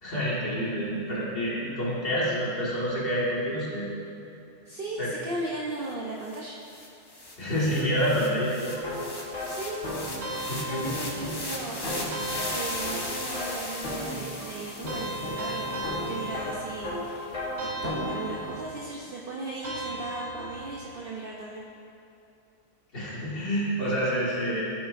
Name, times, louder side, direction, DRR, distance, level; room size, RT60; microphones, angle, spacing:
voice 1, 0.0-3.9 5.0-5.1 7.4-8.8 10.5-10.9 22.9-24.7, equal, 50° left, -7 dB, 2.1 m, -28 dB
voice 2, 4.6-6.6 9.5-10.2 10.7-17.4 17.8-21.6, right 2 dB, 55° right, -4 dB, 0.9 m, -37 dB
sound 1, 5.9-6.0 6.2-16.6, left 2 dB, 25° left, 0.6 m, -38 dB
sound 2, 8.7-18.5, left 1 dB, 70° left, 1.7 m, -36 dB
sound 3, 10.2-11.5 12.1-13.4 14.9-17.0 17.6-18.9 19.6-20.9, right 1 dB, 85° right, 1.7 m, -37 dB
14.0 x 5.8 x 2.6 m, 2.8 s
omnidirectional pair, 1.3 m